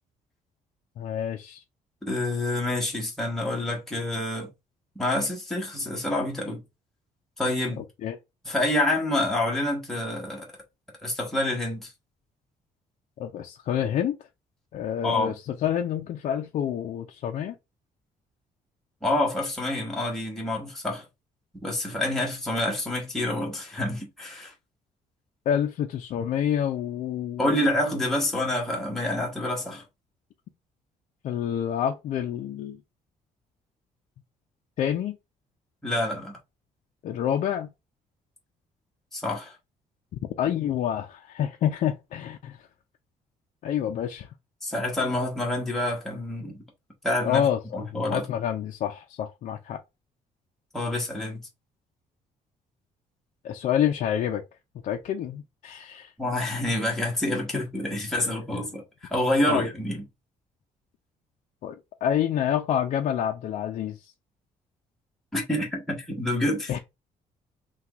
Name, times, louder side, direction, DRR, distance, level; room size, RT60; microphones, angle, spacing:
voice 1, 1.0-1.6 7.8-8.2 13.2-14.2 14.7-17.6 25.5-27.6 31.2-32.8 34.8-35.2 37.0-37.7 40.4-42.6 43.6-44.3 47.2-47.6 47.9-49.8 53.4-54.4 54.8-56.1 59.5-59.7 61.6-64.1 66.7-66.8, left 9 dB, 55° left, 0.5 m, -28 dB
voice 2, 2.0-4.5 4.9-6.6 7.4-7.8 8.4-10.5 11.0-11.9 15.0-15.3 19.0-21.0 21.5-24.5 27.4-29.8 35.8-36.4 39.1-39.5 44.6-46.6 47.0-47.5 47.7-48.2 50.7-51.4 56.2-58.8 59.1-60.0 65.3-66.7, left 1 dB, 5° left, 1.1 m, -27 dB
5.8 x 2.3 x 2.9 m
cardioid pair, 165°, 14 cm